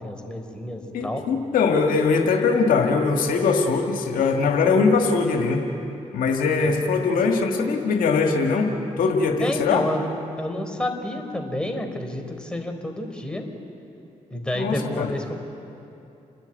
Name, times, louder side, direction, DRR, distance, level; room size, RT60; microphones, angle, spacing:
voice 1, 0.0-1.2 6.6-6.7 9.4-10.1 10.4-13.4 14.3-15.3, left 1 dB, 5° left, 4 dB, 4.0 m, -29 dB
voice 2, 0.9-5.6 6.1-8.7 9.0-9.9 14.5-15.1, left 4 dB, 80° left, 3 dB, 1.6 m, -21 dB
30.0 x 10.5 x 9.0 m, 2.7 s
supercardioid pair, 50°, 14 cm